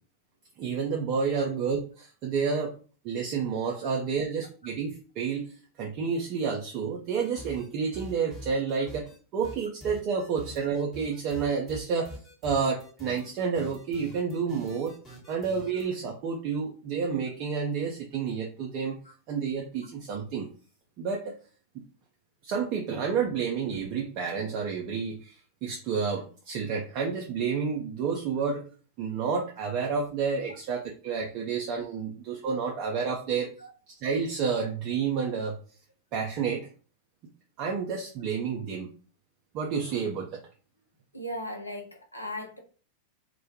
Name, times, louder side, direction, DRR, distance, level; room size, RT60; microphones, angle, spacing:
voice 1, 0.6-2.8 3.0-5.5 5.8-9.0 9.3-12.1 12.4-14.9 15.3-19.0 19.3-20.5 21.0-21.3 21.7-21.8 22.4-25.3 25.6-28.6 29.0-33.5 34.0-35.6 36.1-36.7 37.6-38.9 39.5-40.4, right 5 dB, 40° right, 0 dB, 0.4 m, -30 dB
sound 1, 7.2-7.7 7.9-9.2 9.4-15.9, left 1 dB, 20° left, 1.0 m, -45 dB
voice 2, 41.1-42.6, left 1 dB, 85° left, 3 dB, 0.5 m, -37 dB
2.1 x 2.1 x 2.7 m, 0.38 s
figure-of-eight pair, 90°, 0 cm